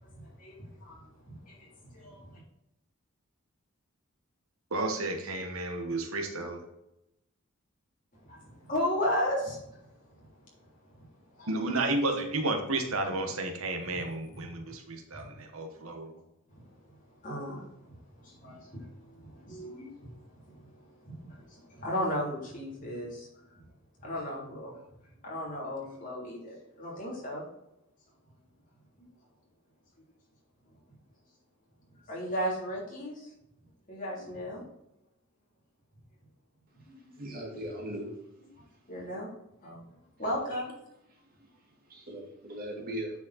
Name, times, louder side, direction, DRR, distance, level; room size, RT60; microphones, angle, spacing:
voice 1, 0.4-1.0 1.3-2.3 8.2-9.6 11.4-11.5 17.2-17.6 18.2-18.9 19.2-20.1 21.0-21.1 21.5-23.3 24.0-24.8 25.2-27.4 32.1-33.3 33.9-34.6 36.9-37.1 38.9-39.3 39.6-39.8 40.2-40.7, equal, 40° left, 3.3 m, -35 dB
voice 2, 4.7-6.6 11.5-16.2, right 2 dB, 80° right, 1.2 m, -32 dB
voice 3, 37.1-38.1 40.5-40.6 41.9-43.1, right 1 dB, 45° right, 2.3 m, -38 dB
9.4 x 5.0 x 4.1 m
head